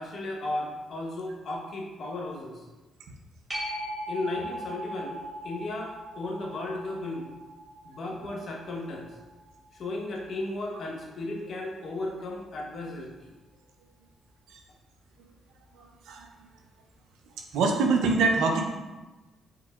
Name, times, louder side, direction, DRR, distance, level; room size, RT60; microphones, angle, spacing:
voice 1, 0.0-2.6 4.1-5.2 5.4-7.3 7.8-9.1 9.7-13.3, left 2 dB, 55° left, -1 dB, 0.9 m, -35 dB
sound 1, 3.5-10.7 16.2-16.3, equal, 10° right, 1.5 m, -40 dB
voice 2, 15.8-16.3 17.5-18.6, right 4 dB, 85° right, 3 dB, 0.5 m, -24 dB
4.8 x 3.5 x 2.3 m, 1.1 s
cardioid pair, 90°, 0 cm